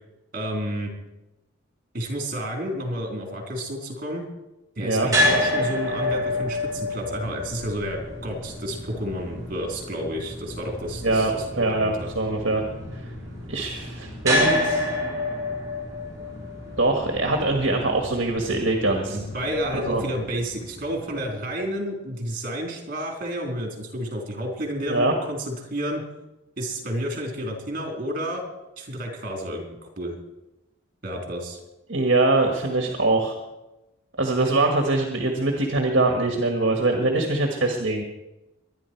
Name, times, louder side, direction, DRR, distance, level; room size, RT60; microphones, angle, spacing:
voice 1, 0.3-0.9 1.9-4.3 4.8-12.1 19.1-26.0 26.6-28.4 28.8-30.2 31.0-31.6, equal, 45° right, 1 dB, 3.7 m, -30 dB
voice 2, 4.8-5.1 11.0-12.6 12.9-13.0 13.5-14.8 16.8-19.2 19.8-20.0 24.8-25.1 31.9-33.4 34.2-38.0, right 2 dB, 60° right, 2 dB, 1.6 m, -23 dB
sound 1, 5.1-21.2, left 1 dB, 15° right, 6.1 m, -29 dB
23.0 x 10.0 x 4.6 m, 0.99 s
head